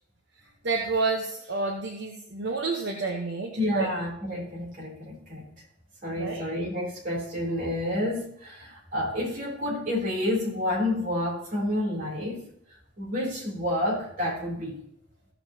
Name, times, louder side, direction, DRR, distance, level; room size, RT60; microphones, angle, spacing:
voice 1, 0.6-3.9 6.2-6.4, right 3 dB, 65° right, 1 dB, 1.1 m, -29 dB
voice 2, 3.6-5.5 6.0-12.4 13.0-14.7, left 1 dB, 45° right, -3 dB, 3.5 m, -29 dB
15.5 x 7.0 x 2.9 m, 0.71 s
head